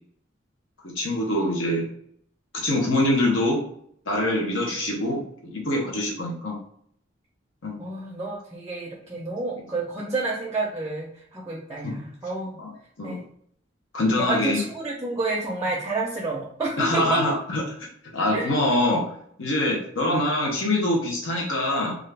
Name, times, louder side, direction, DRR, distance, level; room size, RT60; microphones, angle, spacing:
voice 1, 0.8-1.9 2.6-3.6 4.1-5.2 5.5-6.6 7.6-7.8 11.8-11.9 12.6-12.7 13.0-13.2 13.9-14.6 16.8-17.6 18.1-19.0 19.4-22.0, left 1 dB, 85° left, -1 dB, 0.8 m, -24 dB
voice 2, 7.8-12.6 13.0-13.2 14.2-17.2 18.3-18.5, right 3 dB, 15° right, -2 dB, 0.5 m, -29 dB
2.6 x 2.4 x 3.3 m, 0.65 s
head